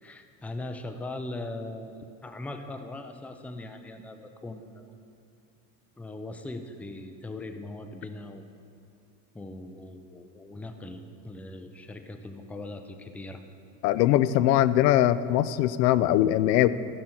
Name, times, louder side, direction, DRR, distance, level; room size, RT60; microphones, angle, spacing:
voice 1, 0.0-4.9 6.0-8.4 9.3-13.4, left 2 dB, 5° left, 6 dB, 0.3 m, -40 dB
voice 2, 13.8-16.7, left 13 dB, 80° left, 15 dB, 0.6 m, -21 dB
15.0 x 6.3 x 4.4 m, 2.5 s
supercardioid pair, 105°, 48 cm